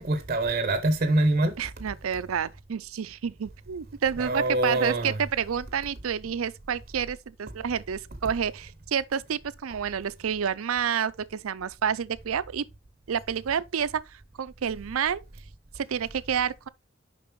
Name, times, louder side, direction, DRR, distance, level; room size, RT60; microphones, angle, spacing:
voice 1, 0.0-1.6 4.2-5.2, right 2 dB, 35° right, 0.7 m, -24 dB
voice 2, 1.6-12.6 13.1-15.2 15.8-16.7, right 7 dB, 90° right, 0.5 m, -29 dB
6.9 x 5.3 x 3.1 m
head